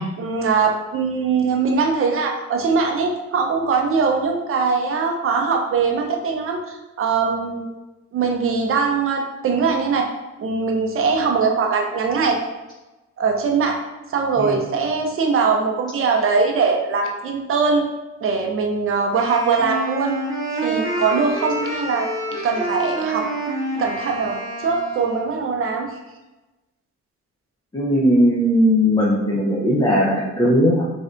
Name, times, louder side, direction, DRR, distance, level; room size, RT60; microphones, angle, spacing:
voice 1, 0.2-7.7 8.1-10.1 10.4-12.4 13.2-13.8 14.1-17.8 18.2-20.2 20.6-23.3 23.8-25.9, right 5 dB, 45° right, 2 dB, 0.6 m, -21 dB
Wind instrument woodwind instrument, 19.1-25.3, right 1 dB, 10° right, 0.9 m, -28 dB
voice 2, 27.7-30.8, equal, 15° left, -5 dB, 0.5 m, -18 dB
3.3 x 2.6 x 2.5 m, 1.1 s
cardioid pair, 90°, 30 cm